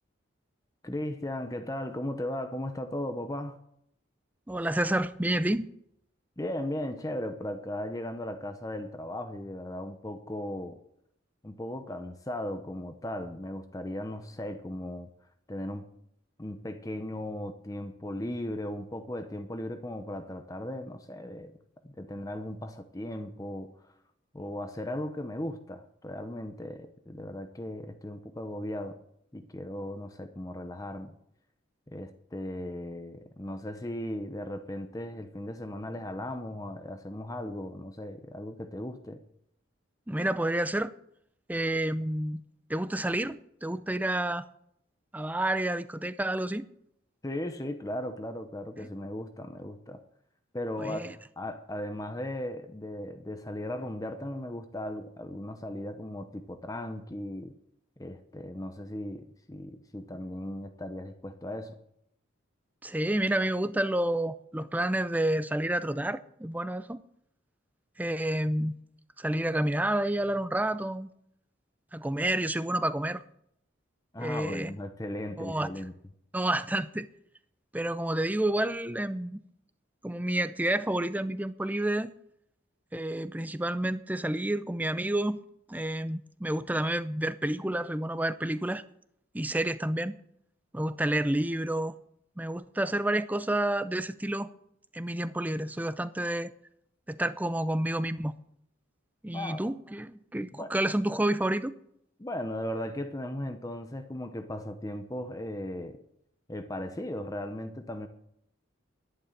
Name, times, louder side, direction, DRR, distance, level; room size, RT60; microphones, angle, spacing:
voice 1, 0.8-3.6 6.4-10.8 11.4-15.1 15.5-15.9 16.4-21.6 21.8-23.7 24.3-29.0 29.3-31.1 31.9-39.2 47.2-50.0 50.5-57.5 58.0-61.8 74.1-75.9 99.3-99.6 100.5-100.7 102.2-106.0 106.5-108.1, left 1 dB, 20° left, 0.8 m, -37 dB
voice 2, 4.5-5.7 40.1-40.9 41.5-44.5 45.1-46.7 50.8-51.1 62.8-67.0 68.0-68.8 69.2-71.1 71.9-73.2 74.2-74.7 75.4-75.7 76.3-77.1 77.7-79.4 80.0-82.1 82.9-85.4 85.7-88.8 89.3-90.2 90.7-91.9 92.4-94.5 94.9-96.5 97.1-98.3 99.2-101.7, right 1 dB, 10° right, 0.5 m, -29 dB
11.5 x 11.0 x 6.6 m
head